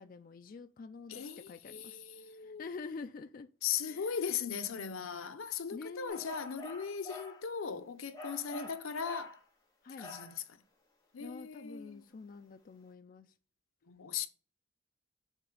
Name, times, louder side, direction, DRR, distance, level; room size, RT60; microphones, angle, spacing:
voice 1, 0.0-3.5 3.9-4.2 5.7-6.3 8.5-8.7 9.8-10.1 11.2-13.3, left 4 dB, 40° left, 0.3 m, -47 dB
voice 2, 1.1-2.6 3.6-9.4 10.0-10.4 11.1-12.0 13.9-14.3, left 7 dB, 90° left, 0.7 m, -38 dB
sound 1, 6.1-7.4 8.1-9.4 10.0-10.4, left 2 dB, 15° left, 1.6 m, -48 dB
7.3 x 3.4 x 3.8 m
head